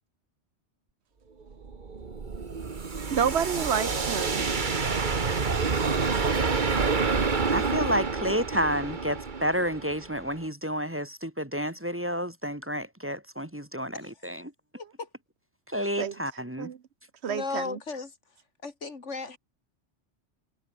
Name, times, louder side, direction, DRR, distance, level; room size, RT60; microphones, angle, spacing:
sound 1, 1.5-10.4, right 4 dB, 40° right, 1.5 m, -28 dB
voice 1, 3.1-4.5 16.0-16.1 16.6-16.8 17.2-17.8, right 8 dB, 65° right, 1.1 m, -28 dB
voice 2, 7.5-14.5 15.7-16.7, equal, 10° right, 1.5 m, -30 dB
voice 3, 14.8-15.1 17.3-18.1 18.6-19.4, left 4 dB, 85° left, 2.8 m, -35 dB
omnidirectional pair, 1.2 m